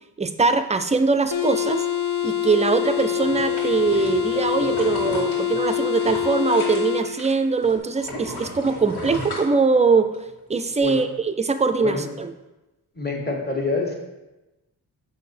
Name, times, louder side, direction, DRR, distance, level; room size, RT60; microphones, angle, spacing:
voice 1, 0.2-1.8 2.2-10.1 10.5-12.3, right 4 dB, 20° right, 9 dB, 0.4 m, -22 dB
sound 1, 1.3-7.1, left 11 dB, 55° left, 0.7 m, -25 dB
sound 2, 3.2-7.3 7.6-10.1 10.6-10.7, left 1 dB, 80° left, 2.4 m, -34 dB
voice 2, 12.9-13.9, left 3 dB, 25° left, 0 dB, 1.6 m, -26 dB
6.7 x 6.0 x 4.3 m, 1.0 s
wide cardioid pair, 120°, 38 cm